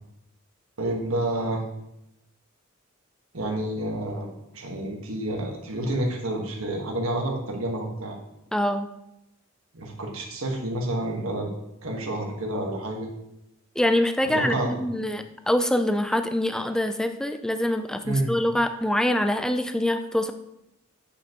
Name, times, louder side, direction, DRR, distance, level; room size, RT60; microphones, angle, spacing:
voice 1, 0.8-1.6 3.3-8.2 9.7-11.5 11.8-13.1 14.2-15.1 18.0-18.3, right 1 dB, 85° right, 1 dB, 1.5 m, -29 dB
voice 2, 8.5-8.9 13.8-20.3, left 1 dB, 5° left, 8 dB, 0.3 m, -25 dB
8.5 x 5.3 x 2.9 m, 0.86 s
head